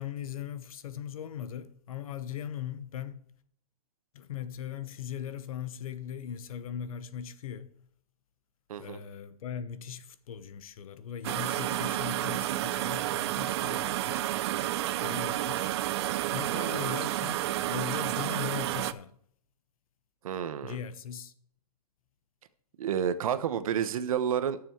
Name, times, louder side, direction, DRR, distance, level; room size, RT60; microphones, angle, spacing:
voice 1, 0.0-3.2 4.1-7.8 8.8-14.3 15.0-15.7 16.3-19.1 20.6-21.3, left 9 dB, 65° left, 1.1 m, -39 dB
sound 1, 11.2-18.9, right 14 dB, 45° right, 0.5 m, -30 dB
voice 2, 16.5-17.0 20.2-20.8 22.8-24.6, right 8 dB, 65° right, 1.0 m, -30 dB
12.5 x 7.0 x 4.5 m
hypercardioid pair, 145°, 19 cm